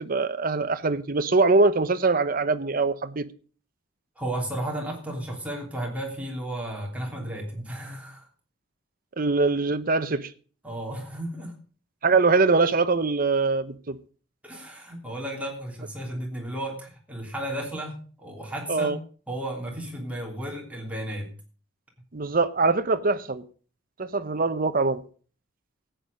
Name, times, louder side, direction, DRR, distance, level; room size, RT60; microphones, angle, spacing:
voice 1, 0.0-3.2 9.2-10.3 12.0-14.0 18.7-19.0 22.1-23.4 24.0-25.0, right 3 dB, 45° right, 0.8 m, -23 dB
voice 2, 4.2-8.3 10.6-11.6 14.4-18.9 19.3-21.3, right 1 dB, 5° right, 3.1 m, -33 dB
14.0 x 9.1 x 5.2 m
head